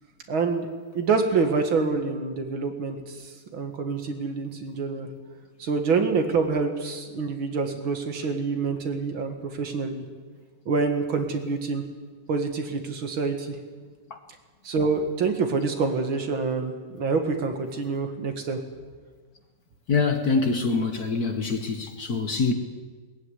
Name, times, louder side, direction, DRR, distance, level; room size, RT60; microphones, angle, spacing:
voice 1, 0.3-0.7 0.9-3.2 3.5-5.1 5.6-10.0 10.7-11.8 12.3-13.6 14.6-18.6, right 4 dB, 65° right, 5 dB, 2.6 m, -26 dB
voice 2, 19.9-22.5, left 4 dB, 45° left, 6 dB, 1.7 m, -25 dB
20.0 x 14.5 x 9.8 m, 1.4 s
omnidirectional pair, 2.4 m